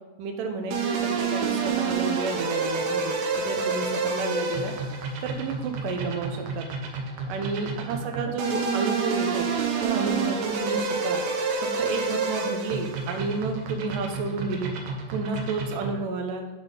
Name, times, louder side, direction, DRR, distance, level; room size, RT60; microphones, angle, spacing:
voice 1, 0.2-4.7 5.2-6.7 7.3-9.5 9.8-11.2 11.6-14.7 15.1-16.4, right 4 dB, 90° right, 4 dB, 2.5 m, -31 dB
sound 1, 0.7-16.1, right 4 dB, 70° right, 2.1 m, -29 dB
7.8 x 4.1 x 5.1 m, 1.2 s
omnidirectional pair, 3.6 m